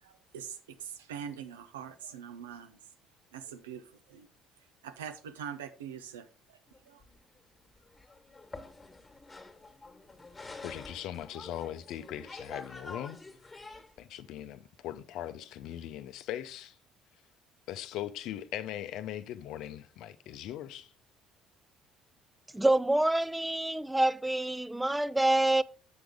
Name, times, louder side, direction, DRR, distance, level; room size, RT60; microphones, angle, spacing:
voice 1, 0.0-2.8 3.3-4.3 4.8-6.6 6.9-7.0, right 8 dB, 85° right, 0.6 m, -43 dB
sound 1, 6.7-14.0, left 3 dB, 20° left, 1.5 m, -48 dB
voice 2, 10.6-13.2 14.0-16.8 17.7-20.9, left 11 dB, 65° left, 0.6 m, -40 dB
voice 3, 22.5-25.6, right 1 dB, 10° right, 0.4 m, -26 dB
7.0 x 6.2 x 3.5 m
hypercardioid pair, 60°, 0 cm